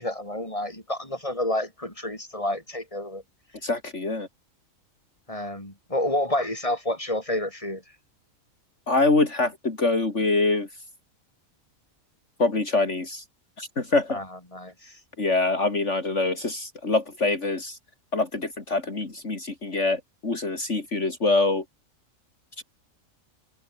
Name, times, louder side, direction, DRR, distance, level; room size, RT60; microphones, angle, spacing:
voice 1, 0.0-3.2 5.3-7.8 14.1-15.0, left 1 dB, 25° left, 6.3 m, -29 dB
voice 2, 3.6-4.3 8.9-10.7 12.4-13.2 13.6-14.2 15.2-17.8 18.1-21.6 22.6-22.7, left 3 dB, 60° left, 3.6 m, -25 dB
omnidirectional pair, 1.4 m